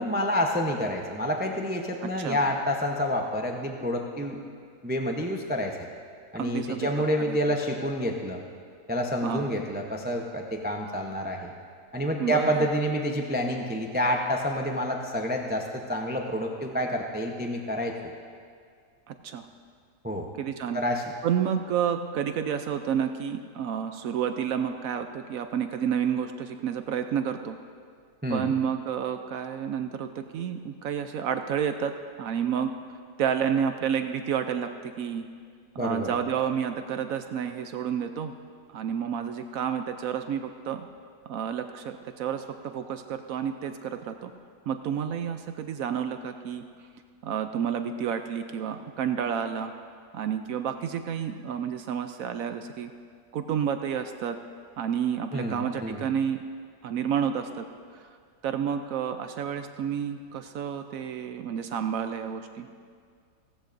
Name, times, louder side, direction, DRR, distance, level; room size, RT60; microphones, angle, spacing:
voice 1, 0.0-4.4 4.8-5.9 6.3-8.4 8.9-11.5 11.9-18.0 20.0-20.3 20.7-21.0 28.2-28.5 35.8-36.1 55.3-56.1, equal, 15° right, 2 dB, 0.3 m, -28 dB
voice 2, 6.4-6.9 7.3-7.5 9.2-9.5 12.2-12.7 19.1-19.5 20.4-20.8 21.2-27.6 28.3-31.9 32.2-32.7 33.2-35.3 35.8-38.3 38.7-40.8 41.3-44.3 44.7-46.6 47.2-49.7 50.1-52.9 53.3-54.4 54.8-56.4 56.8-57.7 57.9-58.1 58.4-62.7, right 8 dB, 70° right, 7 dB, 0.9 m, -30 dB
16.5 x 15.5 x 2.6 m, 2.1 s
omnidirectional pair, 1.7 m